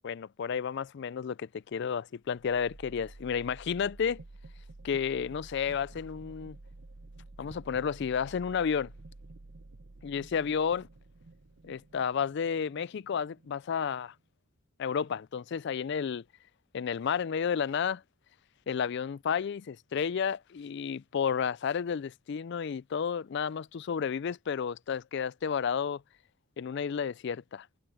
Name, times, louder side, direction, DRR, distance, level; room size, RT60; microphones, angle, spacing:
voice 1, 0.0-4.2 4.8-6.6 7.4-8.9 10.0-10.9 11.6-14.1 14.8-16.2 16.7-18.0 18.7-26.0 26.6-27.7, left 7 dB, 50° left, 0.3 m, -31 dB
sound 1, 2.3-14.2, right 2 dB, 60° right, 0.8 m, -51 dB
head